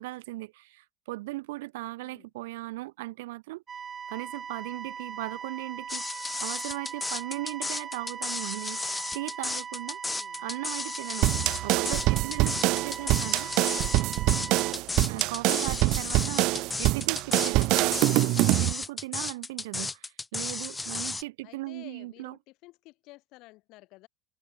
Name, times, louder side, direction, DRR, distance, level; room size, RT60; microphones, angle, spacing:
voice 1, 0.0-3.6 4.1-10.0 10.4-11.3 11.6-13.5 15.1-22.4, right 20 dB, 85° right, 3.2 m, -38 dB
voice 2, 2.0-2.3 10.0-10.5 13.0-13.4 15.0-15.3 21.4-24.1, left 21 dB, 65° left, 5.3 m, -53 dB
sound 1, 3.7-14.7, right 6 dB, 30° right, 2.4 m, -40 dB
sound 2, 5.9-21.2, left 3 dB, 15° left, 1.9 m, -34 dB
sound 3, 11.2-18.7, right 20 dB, 65° right, 0.7 m, -25 dB
supercardioid pair, 105°, 0 cm